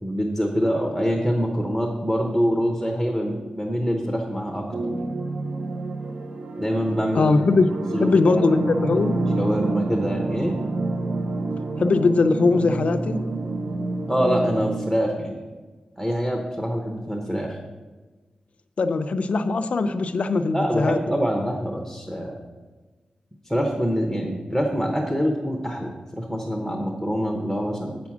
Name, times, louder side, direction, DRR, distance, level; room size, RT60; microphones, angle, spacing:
voice 1, 0.0-4.9 6.6-7.3 7.9-8.4 9.4-10.6 14.1-15.5 16.0-17.6 20.5-22.4 23.4-28.0, equal, 5° right, 1 dB, 0.8 m, -25 dB
sound 1, 4.7-14.8, right 2 dB, 50° right, 0.7 m, -28 dB
voice 2, 7.2-9.2 11.8-13.2 18.8-21.0, left 3 dB, 55° left, 9 dB, 0.5 m, -21 dB
7.8 x 6.1 x 7.2 m, 1.3 s
wide cardioid pair, 180°, 3 cm